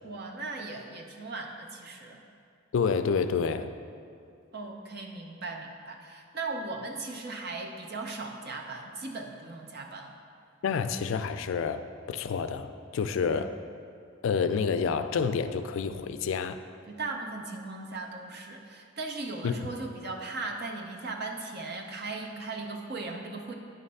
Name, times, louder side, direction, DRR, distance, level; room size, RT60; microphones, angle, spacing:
voice 1, 0.0-2.2 4.5-10.2 13.2-13.4 16.9-23.5, right 3 dB, 50° right, 2 dB, 0.7 m, -38 dB
voice 2, 2.7-3.7 10.6-13.5 14.2-16.6 19.4-19.6, left 6 dB, 65° left, 10 dB, 0.3 m, -28 dB
9.4 x 3.2 x 5.4 m, 2.4 s
head